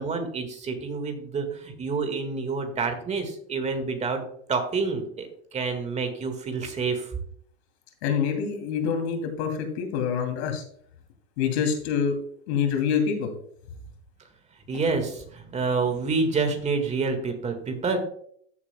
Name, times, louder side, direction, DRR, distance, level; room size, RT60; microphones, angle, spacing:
voice 1, 0.0-4.2 4.5-7.1 14.7-18.0, right 4 dB, 15° right, 6 dB, 1.7 m, -28 dB
voice 2, 8.0-10.6 11.4-12.2 12.5-13.3, left 7 dB, 55° left, 4 dB, 2.6 m, -26 dB
14.0 x 7.1 x 2.2 m, 0.63 s
hypercardioid pair, 125°, 39 cm